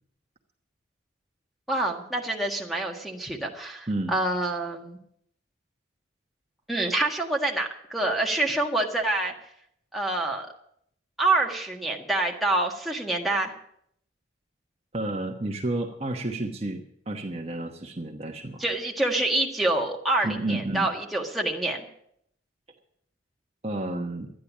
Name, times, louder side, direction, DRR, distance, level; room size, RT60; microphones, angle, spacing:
voice 1, 1.7-5.0 6.7-9.3 9.9-10.5 11.2-13.5 18.6-21.8, right 2 dB, ahead, -2 dB, 1.6 m, -26 dB
voice 2, 14.9-18.6 20.2-20.9 23.6-24.3, right 2 dB, 30° right, 2 dB, 1.1 m, -31 dB
12.5 x 10.0 x 7.2 m, 0.71 s
head